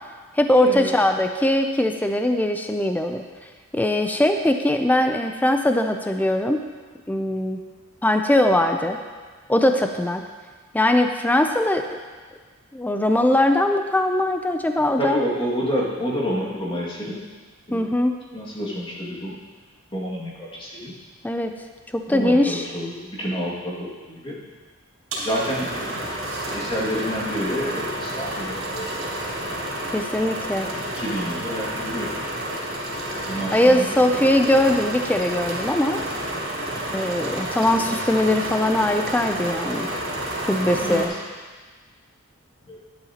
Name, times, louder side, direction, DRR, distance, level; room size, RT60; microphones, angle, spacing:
voice 1, 0.3-3.2 3.7-6.6 7.1-7.6 8.0-9.0 9.5-10.2 10.7-11.8 12.7-15.2 17.7-18.2 21.2-21.5 21.9-22.6 29.9-30.7 33.5-36.0 36.9-39.9 40.4-41.1, left 1 dB, 10° left, 5 dB, 0.4 m, -21 dB
voice 2, 15.0-17.3 17.7-17.9 18.3-19.4 19.9-20.9 22.1-24.3 25.1-26.1 26.5-29.2 30.6-32.1 33.3-33.9 34.1-34.2 36.7-36.8 40.7-41.1 42.7-42.8, equal, 25° left, -5 dB, 2.1 m, -29 dB
sound 1, 25.1-41.1, right 1 dB, 80° right, 3.5 m, -30 dB
12.0 x 11.0 x 2.9 m, 1.4 s
head